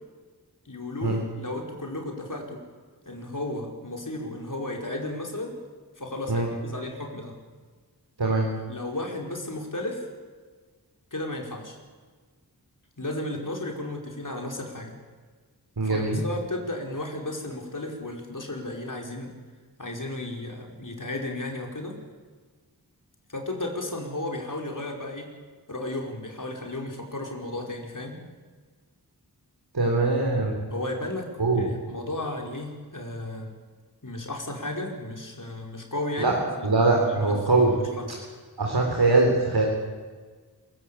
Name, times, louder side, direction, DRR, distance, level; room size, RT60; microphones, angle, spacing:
voice 1, 0.7-2.6 3.1-5.6 6.0-7.3 8.7-10.1 11.1-11.8 13.0-14.9 15.8-19.3 19.8-22.0 23.3-25.3 25.7-28.2 30.7-31.3 31.5-33.6 34.0-36.7 37.1-38.1, left 1 dB, 50° left, 1 dB, 5.2 m, -34 dB
voice 2, 15.8-16.2 29.7-30.6 31.4-31.6 36.2-36.4 36.6-37.7 38.6-39.7, right 3 dB, 70° right, 0 dB, 4.0 m, -22 dB
26.5 x 16.0 x 8.7 m, 1.5 s
wide cardioid pair, 45°, 40 cm